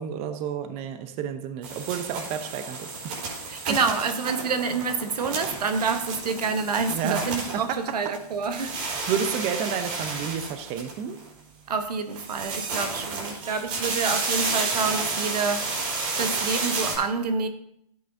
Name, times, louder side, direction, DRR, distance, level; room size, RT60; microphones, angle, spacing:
voice 1, 0.0-3.2 6.9-7.3 7.5-7.8 8.6-11.2, right 8 dB, 30° right, 0.7 m, -31 dB
sound 1, 1.6-8.2 8.4-11.3 12.1-17.0, right 3 dB, 60° right, 4.1 m, -31 dB
voice 2, 3.5-8.8 11.7-15.8 16.2-17.5, right 5 dB, 80° right, 1.1 m, -27 dB
13.0 x 8.4 x 2.7 m
hypercardioid pair, 130°, 20 cm